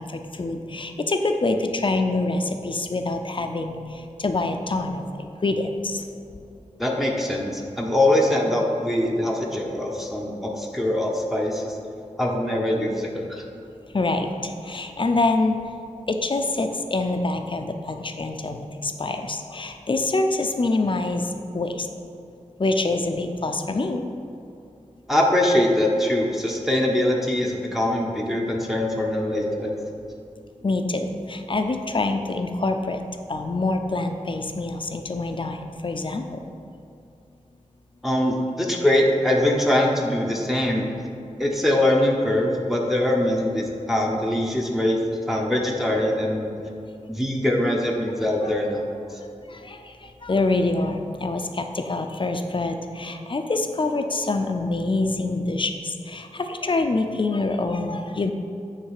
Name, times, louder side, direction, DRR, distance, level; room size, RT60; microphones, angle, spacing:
voice 1, 0.0-3.8 4.2-6.0 13.9-15.5 16.1-21.3 21.5-21.9 22.6-24.0 30.6-33.0 33.3-36.3 48.4-48.5 49.5-58.3, left 2 dB, 45° left, 6 dB, 0.5 m, -25 dB
voice 2, 6.8-11.8 12.2-13.4 25.1-29.7 38.0-40.9 41.4-45.0 45.3-46.5 47.1-48.8 49.1-49.2, left 1 dB, ahead, -2 dB, 0.8 m, -22 dB
9.4 x 3.3 x 4.8 m, 2.6 s
wide cardioid pair, 85°, 13 cm